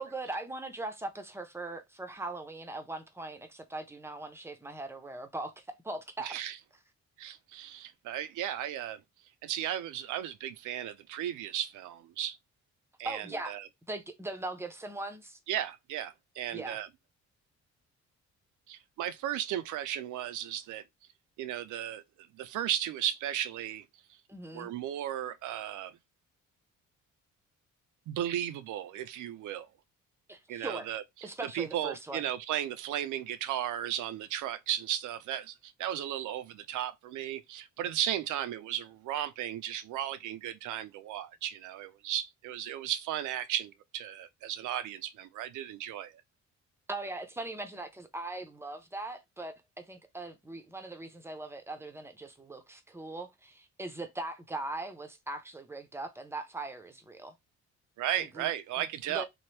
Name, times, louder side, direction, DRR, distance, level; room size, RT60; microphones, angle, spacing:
voice 1, 0.0-6.4 13.0-13.5 13.9-15.4 16.5-16.8 24.3-24.7 30.3-30.9 31.2-32.3 46.9-57.3 58.2-58.5 59.1-59.2, right 2 dB, 10° right, 0.6 m, -40 dB
voice 2, 6.2-6.6 7.2-9.0 9.4-12.4 13.0-13.7 15.5-16.9 18.7-20.8 21.4-23.8 24.5-25.9 28.1-29.7 30.5-31.0 31.4-46.1 58.0-59.2, right 11 dB, 80° right, 0.5 m, -35 dB
2.9 x 2.1 x 3.2 m
cardioid pair, 90°, 30 cm